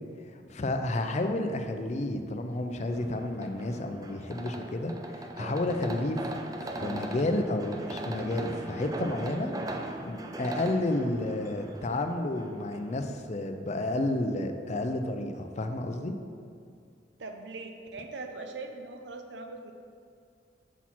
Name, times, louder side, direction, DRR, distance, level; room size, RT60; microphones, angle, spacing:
voice 1, 0.3-6.3 6.7-9.5 10.0-16.1, left 2 dB, 40° left, 6 dB, 0.5 m, -31 dB
sound 1, 2.9-13.0, right 1 dB, 20° right, 0.4 m, -40 dB
voice 2, 17.2-19.7, right 3 dB, 75° right, 5 dB, 0.6 m, -41 dB
5.9 x 5.9 x 4.2 m, 2.3 s
head